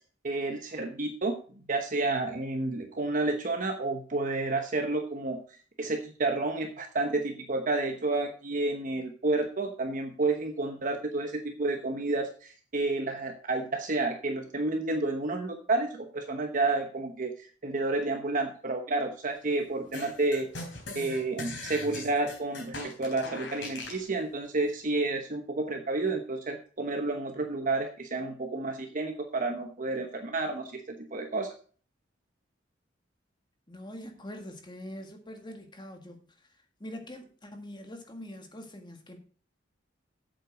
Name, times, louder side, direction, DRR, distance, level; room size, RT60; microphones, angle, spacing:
voice 1, 0.2-1.4 1.7-5.4 5.8-20.5 20.9-31.5, right 2 dB, 45° right, 1.0 m, -30 dB
sound 1, 19.9-24.0, left 2 dB, 70° left, 3.9 m, -40 dB
voice 2, 33.7-36.2 36.8-39.2, left 1 dB, 25° left, 1.7 m, -43 dB
8.2 x 7.7 x 5.0 m
head